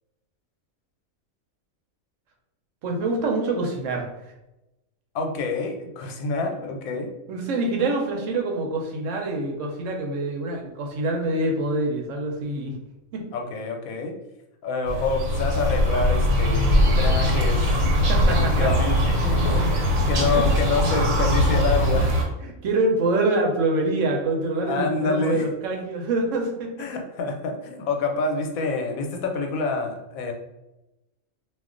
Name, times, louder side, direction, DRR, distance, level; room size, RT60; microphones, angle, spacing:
voice 1, 2.8-4.1 7.3-12.7 13.1-13.2 18.1-18.7 20.2-20.4 22.4-26.7, right 2 dB, 70° right, 2 dB, 1.0 m, -25 dB
voice 2, 5.1-7.1 13.3-14.1 14.6-17.8 18.3-22.1 24.7-25.4 26.8-30.3, left 4 dB, 90° left, 3 dB, 1.0 m, -27 dB
sound 1, 14.8-22.2, left 1 dB, 85° right, 1.1 m, -21 dB
2.4 x 2.3 x 3.7 m, 0.96 s
omnidirectional pair, 1.4 m